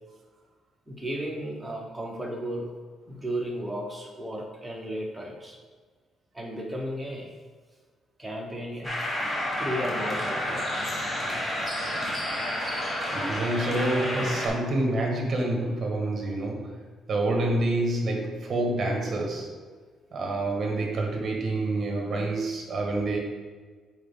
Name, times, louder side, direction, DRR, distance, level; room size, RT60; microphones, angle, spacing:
voice 1, 0.9-2.7 3.1-5.6 6.3-7.3 8.2-8.9 9.6-10.8, equal, 5° right, -1 dB, 1.1 m, -34 dB
sound 1, 8.8-14.5, left 1 dB, 15° left, 1.3 m, -30 dB
voice 2, 13.1-16.7 17.1-19.5 20.1-23.2, right 2 dB, 35° right, 1 dB, 1.5 m, -27 dB
8.4 x 4.1 x 3.7 m, 1.5 s
cardioid pair, 155°, 0 cm